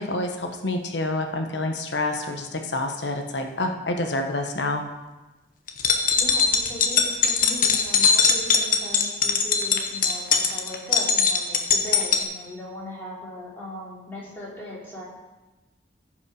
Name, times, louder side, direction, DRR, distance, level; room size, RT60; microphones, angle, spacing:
voice 1, 0.0-4.9, left 2 dB, 75° left, 4 dB, 1.1 m, -28 dB
sound 1, 5.7-12.2, left 6 dB, 50° left, 0.9 m, -21 dB
voice 2, 6.1-15.0, left 1 dB, 15° left, -6 dB, 3.0 m, -38 dB
15.0 x 5.4 x 4.9 m, 1.1 s
head